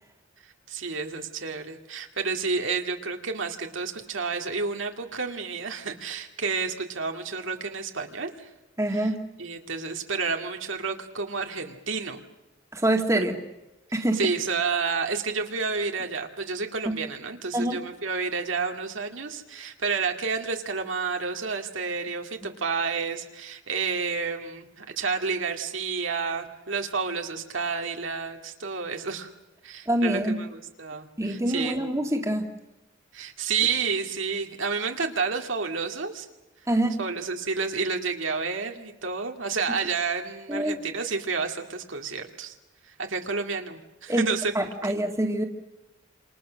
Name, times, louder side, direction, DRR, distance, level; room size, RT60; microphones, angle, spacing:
voice 1, 0.7-8.5 8.9-9.1 9.4-12.2 14.1-29.3 29.6-31.8 33.1-36.3 37.0-42.5 42.9-44.5, right 5 dB, 85° right, 4 dB, 2.3 m, -30 dB
voice 2, 8.8-9.2 12.7-13.3 13.9-14.2 16.9-17.0 17.5-17.8 29.9-30.4 31.2-32.5 36.7-37.0 40.5-40.8 44.1-45.4, right 1 dB, 15° right, 3 dB, 1.9 m, -25 dB
28.0 x 27.0 x 6.4 m, 1.0 s
head